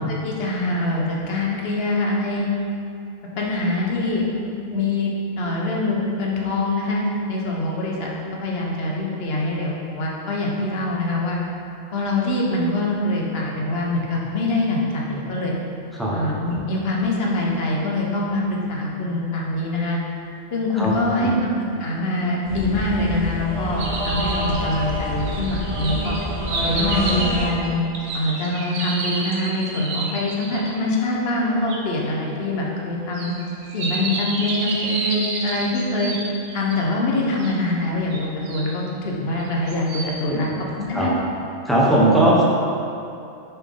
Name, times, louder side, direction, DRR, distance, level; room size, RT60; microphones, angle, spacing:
voice 1, 0.0-2.5 3.4-11.4 11.9-15.5 16.1-20.0 20.5-21.5 21.8-26.2 26.6-27.8 28.1-33.3 33.7-36.1 36.5-40.5 40.8-41.1, left 2 dB, 55° left, -2 dB, 1.1 m, -24 dB
voice 2, 20.8-21.3 40.3-40.4 40.9-41.1 41.6-42.4, right 1 dB, ahead, -7 dB, 0.9 m, -19 dB
sound 1, 22.4-27.4, equal, 50° right, 1.4 m, -27 dB
sound 2, 23.8-30.8 31.7-31.8 33.1-36.9 37.4-37.5 38.1-38.7 39.4-40.2, right 2 dB, 70° right, 1.1 m, -30 dB
7.1 x 4.3 x 3.7 m, 2.6 s
omnidirectional pair, 1.3 m